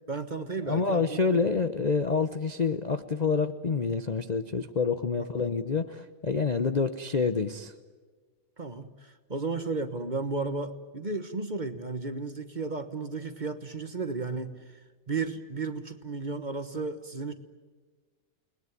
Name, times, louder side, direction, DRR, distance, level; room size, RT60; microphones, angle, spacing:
voice 1, 0.1-1.5 5.2-5.5 8.6-14.5 15.1-17.3, right 3 dB, 30° right, 9 dB, 1.1 m, -34 dB
voice 2, 0.7-7.7, left 4 dB, 60° left, 10 dB, 0.4 m, -27 dB
29.5 x 20.5 x 9.7 m, 1.4 s
omnidirectional pair, 2.1 m